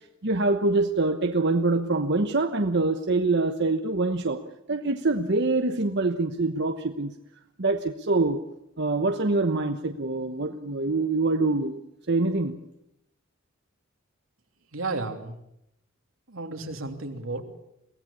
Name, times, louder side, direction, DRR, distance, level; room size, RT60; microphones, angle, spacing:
voice 1, 0.2-4.4 4.7-7.1 7.6-8.4 8.8-11.8 12.1-12.6, right 3 dB, 55° right, 7 dB, 1.1 m, -25 dB
voice 2, 14.7-15.4 16.3-17.6, right 3 dB, 85° right, 4 dB, 3.2 m, -33 dB
23.5 x 17.5 x 8.6 m, 0.82 s
head